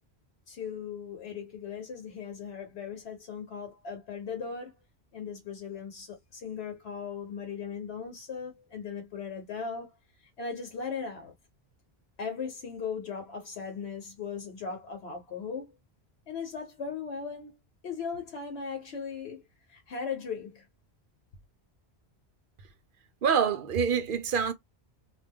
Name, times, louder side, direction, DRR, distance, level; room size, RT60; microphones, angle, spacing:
voice 1, 0.5-4.8 5.1-9.9 10.2-11.3 12.2-15.7 16.3-17.6 17.8-19.4 19.7-20.7, left 6 dB, 75° left, 1.0 m, -38 dB
voice 2, 23.2-24.5, right 6 dB, 60° right, 0.7 m, -26 dB
2.4 x 2.1 x 3.4 m
omnidirectional pair, 1.1 m